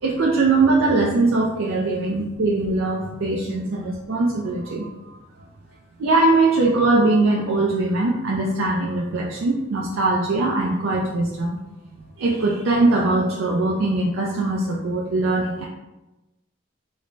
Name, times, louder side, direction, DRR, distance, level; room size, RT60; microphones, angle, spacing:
voice 1, 0.0-4.9 6.0-11.6 12.2-15.7, right 2 dB, 85° right, -3 dB, 0.4 m, -21 dB
3.1 x 2.1 x 3.8 m, 1.0 s
head